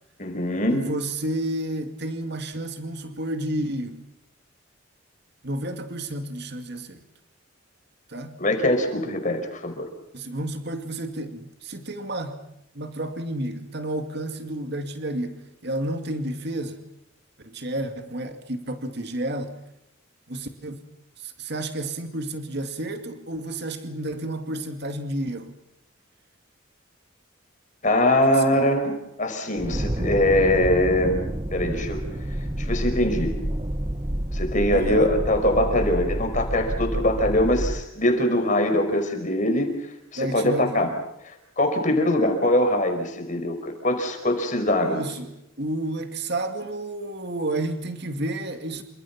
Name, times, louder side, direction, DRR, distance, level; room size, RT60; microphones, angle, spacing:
voice 1, 0.2-0.9 8.4-9.9 27.8-28.9 29.2-31.2 31.5-32.0 32.6-33.3 34.3-39.7 40.1-40.9 41.2-45.0, left 1 dB, 40° left, 4 dB, 5.1 m, -22 dB
voice 2, 0.7-4.1 5.4-7.0 8.1-8.4 10.1-12.4 12.7-16.8 17.4-19.5 20.3-20.9 21.2-25.6 28.3-28.6 34.7-35.1 40.2-40.8 44.8-48.8, right 1 dB, 55° right, 6 dB, 2.4 m, -31 dB
sound 1, 29.6-37.9, right 1 dB, 25° right, 1.0 m, -29 dB
29.0 x 26.5 x 6.0 m, 0.83 s
head